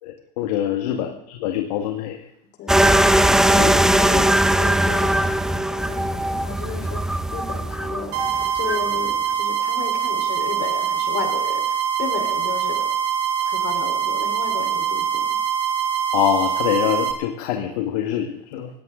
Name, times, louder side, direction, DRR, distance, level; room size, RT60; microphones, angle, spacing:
voice 1, 0.0-2.2 3.6-3.7 16.1-18.7, left 11 dB, 70° left, 4 dB, 1.9 m, -24 dB
voice 2, 0.8-1.2 2.6-12.9 13.4-15.3, left 6 dB, 55° left, 3 dB, 4.4 m, -34 dB
sound 1, 2.7-8.9, right 1 dB, ahead, 0.9 m, -19 dB
sound 2, 8.1-17.1, right 8 dB, 55° right, 3.6 m, -23 dB
19.0 x 16.5 x 3.9 m, 0.78 s
hypercardioid pair, 100°, 21 cm